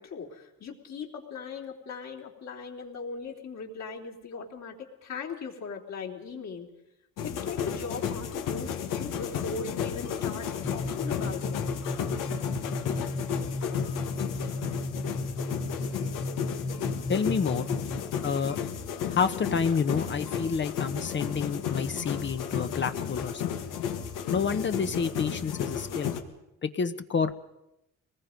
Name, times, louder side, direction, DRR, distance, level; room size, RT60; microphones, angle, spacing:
voice 1, 0.0-4.8 5.0-6.7 7.2-11.6, left 5 dB, 55° left, 0 dB, 3.6 m, -39 dB
sound 1, 7.2-26.2, left 8 dB, 90° left, 2.0 m, -33 dB
sound 2, 10.6-18.2, left 2 dB, 15° left, 1.1 m, -35 dB
voice 2, 17.1-17.7 18.2-18.6 19.1-23.6 24.3-26.1 26.6-27.3, left 6 dB, 35° left, 9 dB, 1.0 m, -29 dB
25.5 x 20.0 x 5.2 m, 0.89 s
cardioid pair, 110°, 31 cm